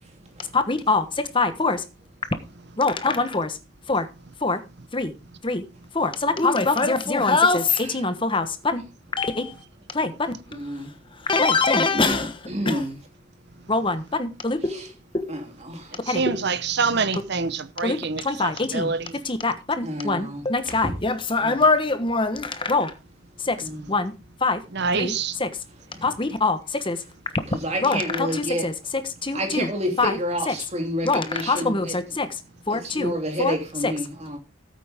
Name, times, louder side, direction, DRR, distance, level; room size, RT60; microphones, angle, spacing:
voice 1, 0.5-1.8 2.8-3.6 3.9-4.1 4.4-4.6 4.9-5.1 5.4-5.6 5.9-8.8 9.2-9.6 9.9-10.6 11.2-12.3 12.7-12.8 13.7-14.9 15.1-15.4 16.1-16.4 17.8-18.9 19.2-22.9 23.4-24.1 24.4-24.6 24.9-25.1 25.4-25.5 26.0-27.0 27.8-28.7 29.2-29.7 30.0-30.2 30.5-30.6 31.0-32.3 32.7-33.1 33.4-33.6 33.8-33.9, left 3 dB, 25° left, 1.1 m, -23 dB
voice 2, 10.5-11.0 11.9-13.0 14.7-14.9 15.3-16.0 19.8-20.9 21.4-21.6 23.6-23.9 25.9-26.1 27.5-28.7 29.3-32.0 32.7-34.4, equal, 30° right, 2.9 m, -30 dB
voice 3, 16.1-19.2 24.7-25.4, right 4 dB, 55° right, 0.8 m, -26 dB
13.5 x 8.5 x 3.6 m
head